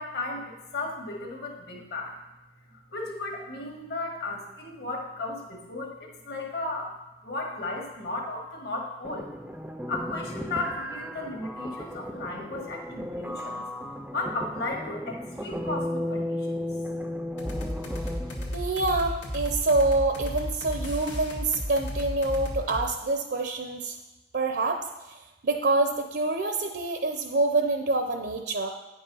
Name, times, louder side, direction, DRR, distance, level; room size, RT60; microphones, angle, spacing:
voice 1, 0.0-2.2 2.7-7.0 7.2-9.3 9.9-13.7 14.1-16.8, left 2 dB, 55° left, 0 dB, 1.7 m, -35 dB
sound 1, 9.0-18.6, left 1 dB, 5° right, 0.4 m, -35 dB
sound 2, 17.4-22.9, left 1 dB, 85° left, 1.6 m, -34 dB
voice 2, 18.5-24.0 24.3-24.8 25.4-28.7, right 2 dB, 65° right, 5 dB, 0.6 m, -26 dB
9.2 x 5.5 x 5.5 m, 1.0 s
head